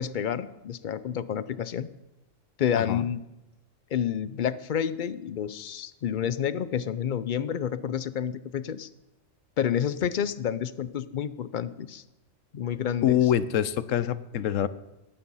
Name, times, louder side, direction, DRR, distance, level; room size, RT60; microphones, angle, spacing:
voice 1, 0.0-1.9 2.6-3.2 3.9-8.9 9.6-12.0 12.5-13.2, left 9 dB, 50° left, 15 dB, 0.6 m, -29 dB
voice 2, 13.0-14.7, left 10 dB, 80° left, 15 dB, 1.1 m, -25 dB
19.0 x 8.9 x 5.5 m, 0.96 s
omnidirectional pair, 1.3 m